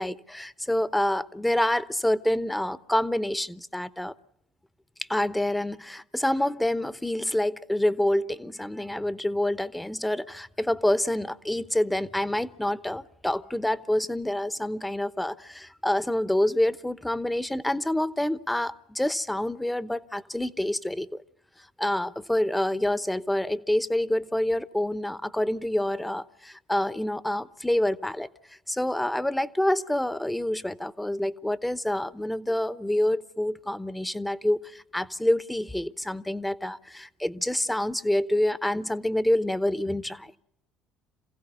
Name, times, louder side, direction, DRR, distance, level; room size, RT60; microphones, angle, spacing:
voice 1, 0.0-4.1 5.1-21.2 21.8-28.3 28.7-40.3, left 1 dB, 5° left, 0.9 m, -27 dB
27.0 x 16.0 x 9.8 m
hypercardioid pair, 60°, 0 cm